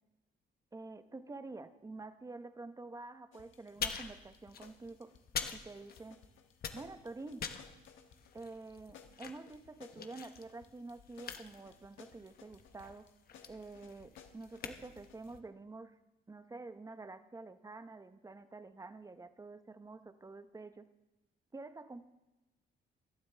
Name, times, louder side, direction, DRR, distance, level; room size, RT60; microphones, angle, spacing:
voice 1, 0.7-5.1 5.5-6.2 6.7-7.5 8.3-13.1 13.5-15.9 16.3-20.9 21.5-22.0, right 3 dB, 15° right, 11 dB, 0.8 m, -48 dB
sound 1, 3.3-15.4, left 7 dB, 80° left, 1.3 m, -61 dB
sound 2, 3.7-6.3 6.5-15.4, left 7 dB, 50° left, 1.0 m, -45 dB
17.5 x 12.0 x 3.4 m, 1.0 s
cardioid pair, 90°, 20 cm